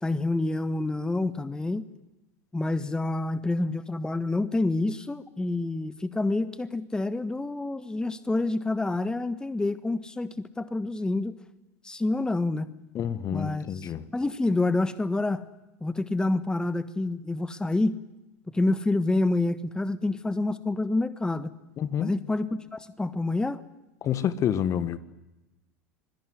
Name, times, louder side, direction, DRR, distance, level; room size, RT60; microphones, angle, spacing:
voice 1, 0.0-1.8 2.5-11.4 11.8-12.7 13.3-15.4 15.8-18.0 18.5-21.5 22.0-23.6, left 2 dB, 10° left, 1.5 m, -28 dB
voice 2, 13.0-14.1 21.8-22.1 24.0-25.0, left 9 dB, 40° left, 1.7 m, -28 dB
26.5 x 21.5 x 9.9 m
hypercardioid pair, 80°, 8 cm